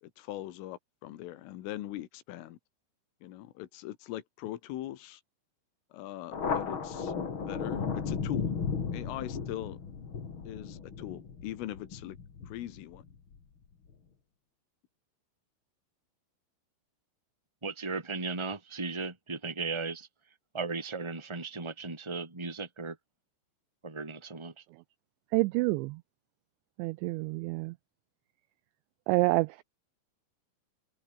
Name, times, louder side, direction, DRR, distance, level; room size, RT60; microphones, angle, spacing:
voice 1, 0.0-2.6 3.2-5.2 5.9-7.1 7.4-8.5 8.9-9.8 10.5-12.2 12.5-13.0, left 14 dB, 85° left, 4.2 m, -41 dB
Thunder, 6.3-13.4, left 6 dB, 35° left, 2.4 m, -35 dB
voice 2, 17.6-20.1 20.5-23.0 23.8-24.5, right 4 dB, 5° right, 2.5 m, -36 dB
voice 3, 25.3-26.0 26.8-27.7 29.1-29.6, right 22 dB, 85° right, 2.6 m, -28 dB
open air
omnidirectional pair, 5.6 m